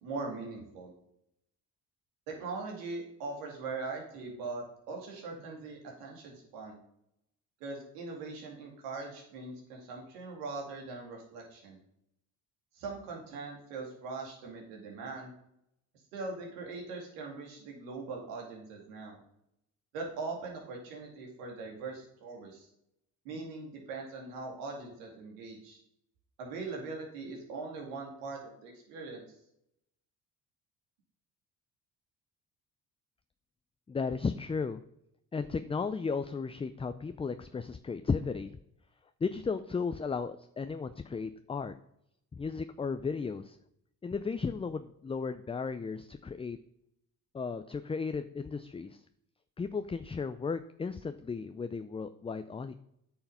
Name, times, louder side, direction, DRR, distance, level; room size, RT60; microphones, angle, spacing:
voice 1, 0.0-0.9 2.3-6.8 7.6-11.8 12.7-15.3 16.1-19.2 19.9-22.7 23.2-25.8 26.4-29.3, right 3 dB, 85° right, 0 dB, 2.3 m, -41 dB
voice 2, 33.9-34.8 35.3-38.6 39.2-41.7 42.3-43.6 44.0-46.6 47.3-49.0 49.6-52.7, left 5 dB, 15° left, 10 dB, 0.4 m, -35 dB
8.6 x 5.7 x 5.6 m, 0.78 s
hypercardioid pair, 55°, 45 cm